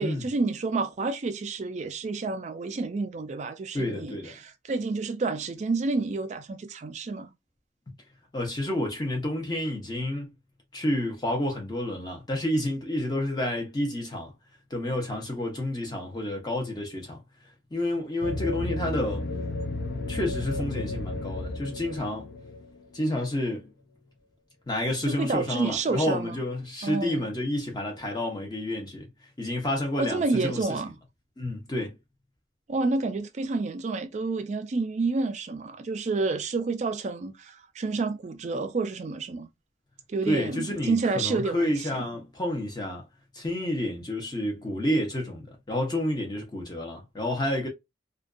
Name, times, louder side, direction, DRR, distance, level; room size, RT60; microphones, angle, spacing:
voice 1, 0.0-7.3 25.0-26.4 26.8-27.3 30.0-30.9 32.7-39.5 40.1-42.0, right 3 dB, 40° right, 0.3 m, -29 dB
voice 2, 3.7-4.4 8.3-10.3 10.7-14.3 14.7-17.2 17.7-19.2 20.1-22.3 22.9-23.7 24.7-29.1 29.4-30.6 31.4-31.9 40.3-43.0 43.3-47.7, left 1 dB, 20° left, 0.7 m, -29 dB
sound 1, 18.2-23.0, left 2 dB, 60° left, 0.5 m, -33 dB
2.5 x 2.2 x 2.4 m
head